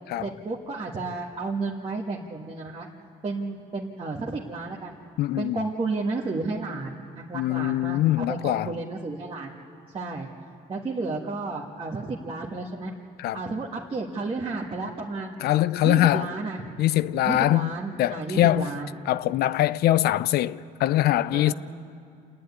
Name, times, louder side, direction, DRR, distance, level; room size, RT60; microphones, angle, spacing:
voice 1, 0.2-2.9 3.2-5.0 5.4-9.5 9.9-10.3 10.7-12.9 13.3-15.4 15.8-16.7 17.2-18.9 21.3-21.5, right 3 dB, 30° right, 1.5 m, -32 dB
voice 2, 5.2-5.6 7.3-8.7 13.2-13.4 15.4-16.3 16.8-18.7 19.1-21.5, left 14 dB, 70° left, 0.5 m, -23 dB
28.0 x 10.5 x 9.6 m
cardioid pair, 110°, 17 cm